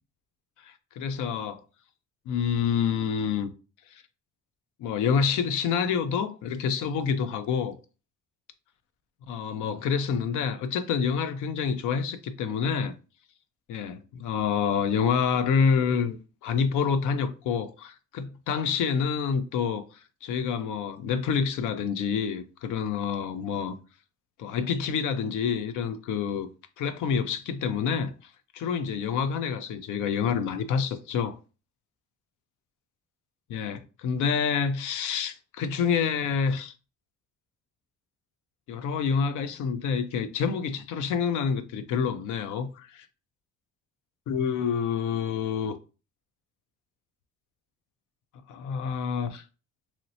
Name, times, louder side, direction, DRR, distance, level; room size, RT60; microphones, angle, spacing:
voice 1, 0.6-1.6 2.3-3.5 4.8-7.8 9.3-12.9 13.7-19.8 20.2-23.8 24.4-26.5 26.8-28.1 28.5-31.4 33.5-36.7 38.7-43.1 44.3-45.7 48.5-49.4, left 6 dB, 80° left, 0.5 m, -27 dB
3.1 x 2.8 x 2.7 m
cardioid pair, 90°, 30 cm